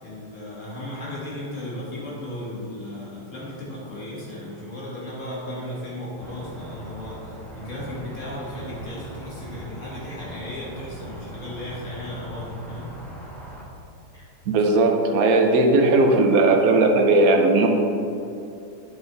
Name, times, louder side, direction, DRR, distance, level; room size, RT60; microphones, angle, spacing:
voice 1, 0.0-13.0 14.1-14.3, left 1 dB, 45° left, -6 dB, 2.3 m, -35 dB
sound 1, 6.2-13.6, right 1 dB, ahead, 1.2 m, -40 dB
voice 2, 14.5-17.7, right 2 dB, 60° right, 3 dB, 1.3 m, -17 dB
8.7 x 6.9 x 4.1 m, 2.6 s
omnidirectional pair, 1.8 m